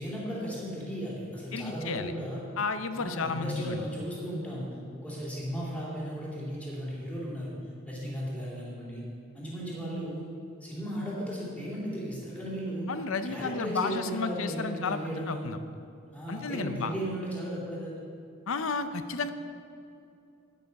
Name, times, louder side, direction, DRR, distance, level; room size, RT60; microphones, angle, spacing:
voice 1, 0.0-2.4 2.9-7.5 7.9-9.0 9.3-10.2 10.6-12.9 13.2-15.5 16.1-17.9, equal, 5° left, -6 dB, 2.7 m, -36 dB
voice 2, 1.5-2.1 2.6-3.8 12.9-15.6 16.3-16.9 18.5-19.3, left 4 dB, 70° left, 10 dB, 0.6 m, -32 dB
9.4 x 8.5 x 5.3 m, 2.6 s
head